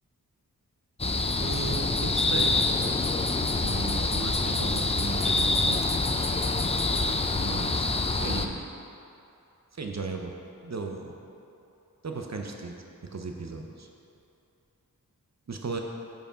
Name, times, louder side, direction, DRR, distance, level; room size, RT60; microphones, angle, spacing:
sound 1, 1.0-8.5, left 3 dB, 20° left, 0.4 m, -26 dB
voice 1, 1.4-2.6 3.6-6.1 7.4-8.7 9.7-10.3 10.6-11.1 12.0-12.8 13.0-13.9 15.5-15.8, right 4 dB, 50° right, 3 dB, 0.6 m, -36 dB
7.8 x 4.8 x 5.0 m, 2.7 s
wide cardioid pair, 75°, 35 cm